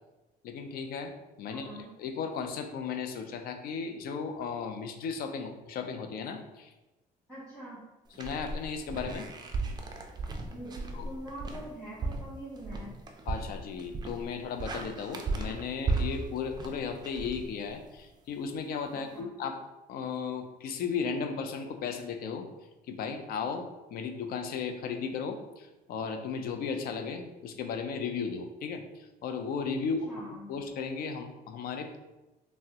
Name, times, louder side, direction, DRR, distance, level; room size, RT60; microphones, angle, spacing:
voice 1, 0.4-1.1 1.4-6.7 8.2-9.3 10.9-11.1 13.3-19.6 19.9-22.5 22.9-30.0 30.3-32.0, left 5 dB, 60° left, 6 dB, 0.4 m, -35 dB
voice 2, 1.5-1.9 7.3-7.8 10.5-12.9 18.9-19.3 30.1-30.5, right 1 dB, 5° left, -11 dB, 1.3 m, -44 dB
sound 1, 8.1-18.0, right 3 dB, 25° right, 0.3 m, -36 dB
3.4 x 2.0 x 2.7 m, 1.0 s
cardioid pair, 110°, 17 cm